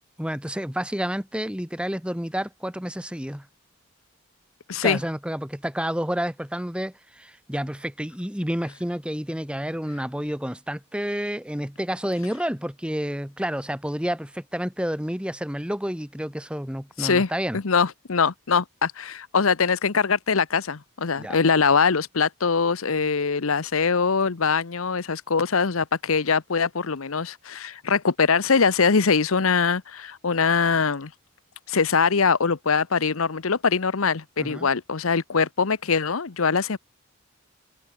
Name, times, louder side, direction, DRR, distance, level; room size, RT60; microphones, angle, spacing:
voice 1, 0.2-3.5 4.8-17.6 21.2-21.4 34.4-34.7, equal, 5° right, 1.5 m, -30 dB
voice 2, 4.7-5.0 17.0-31.1 31.7-36.8, left 5 dB, 85° left, 0.9 m, -22 dB
head